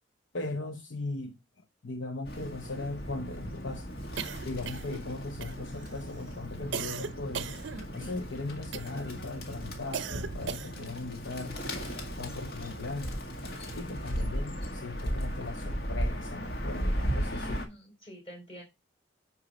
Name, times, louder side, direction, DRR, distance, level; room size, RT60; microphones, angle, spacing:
voice 1, 0.3-3.9 4.4-7.5 7.9-11.6 12.2-13.2 13.7-17.6, left 3 dB, 70° left, 0.8 m, -38 dB
Bird, 2.2-17.7, equal, 50° left, 1.9 m, -36 dB
sound 1, 4.2-5.1 5.4-5.9 6.7-8.2 8.7-9.2 9.9-10.9, right 6 dB, 65° right, 0.6 m, -38 dB
voice 2, 17.3-18.6, right 1 dB, 30° left, 4.3 m, -47 dB
10.0 x 4.8 x 4.2 m
head